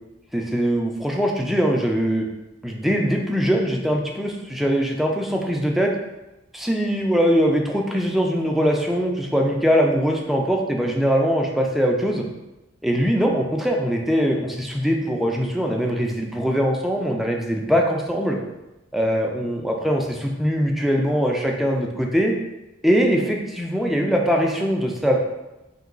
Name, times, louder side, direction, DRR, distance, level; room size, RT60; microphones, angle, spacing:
voice 1, 0.3-2.3 2.6-5.9 6.5-12.2 12.8-18.4 18.9-22.3 22.8-25.2, equal, ahead, 0 dB, 0.4 m, -22 dB
3.9 x 2.6 x 3.8 m, 1.0 s
head